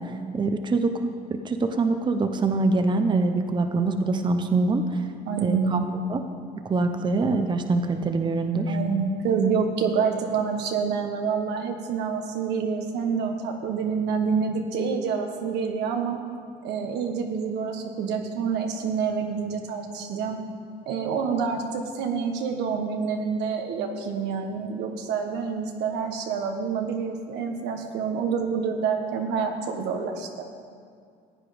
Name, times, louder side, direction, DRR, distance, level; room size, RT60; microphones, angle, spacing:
voice 1, 0.0-5.0 5.4-6.2 6.6-8.8, right 3 dB, 25° right, 7 dB, 0.8 m, -24 dB
voice 2, 5.3-5.9 8.7-16.2 16.6-20.4 20.9-30.5, right 6 dB, 85° right, 4 dB, 1.4 m, -27 dB
15.0 x 9.1 x 5.2 m, 2.2 s
cardioid pair, 110°, 17 cm